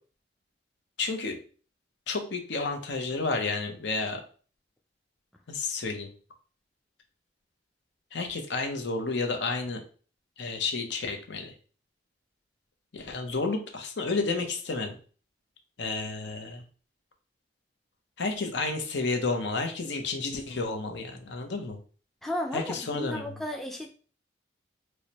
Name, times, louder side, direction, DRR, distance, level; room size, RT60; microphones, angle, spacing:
voice 1, 1.0-1.4 2.1-4.2 5.5-6.1 8.1-9.8 10.4-11.5 12.9-15.0 15.8-16.6 18.2-21.8 22.5-23.3, left 3 dB, 80° left, 4 dB, 0.7 m, -31 dB
voice 2, 22.2-23.9, left 1 dB, ahead, 1 dB, 0.3 m, -34 dB
4.6 x 2.1 x 2.8 m, 0.40 s
head